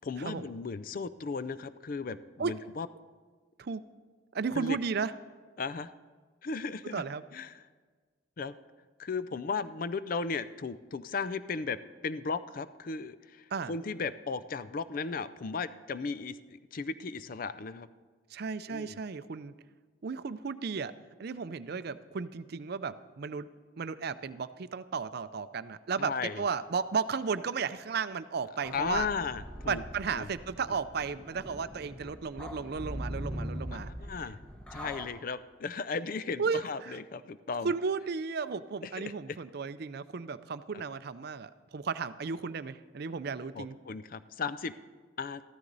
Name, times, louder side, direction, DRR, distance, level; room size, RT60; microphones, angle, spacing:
voice 1, 0.0-2.9 4.5-4.8 5.6-5.9 6.4-7.0 7.3-7.6 8.4-8.6 9.0-17.9 18.7-19.0 26.0-26.4 28.7-29.8 30.1-30.3 34.0-34.4 34.7-37.7 38.8-39.4 40.7-40.8 43.5-44.7 45.2-45.4, left 4 dB, 45° left, 14 dB, 0.4 m, -36 dB
voice 2, 4.3-5.1 6.9-7.2 13.5-13.7 18.3-19.5 20.0-20.9 21.2-23.5 23.8-29.1 29.7-33.9 36.4-37.0 37.6-43.8, right 5 dB, 50° right, 13 dB, 0.4 m, -34 dB
sound 1, 28.6-35.1, equal, 5° left, 0.9 m, -41 dB
14.0 x 13.0 x 4.0 m, 1.5 s
head